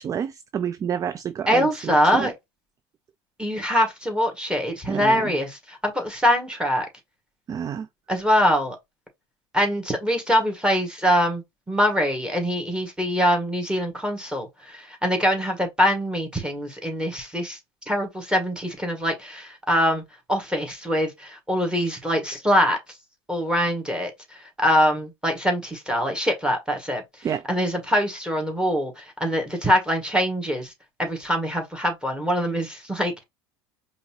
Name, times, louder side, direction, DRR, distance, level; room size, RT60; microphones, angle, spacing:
voice 1, 0.0-2.3 4.9-5.3 7.5-7.9 27.2-27.4, right 8 dB, 25° right, 0.3 m, -29 dB
voice 2, 1.5-2.3 3.4-6.9 8.1-8.8 9.5-17.6 17.9-20.0 20.3-22.8 23.3-30.7 31.0-33.2, equal, 5° right, 1.9 m, -23 dB
5.1 x 2.9 x 2.9 m
hypercardioid pair, 80°, 13 cm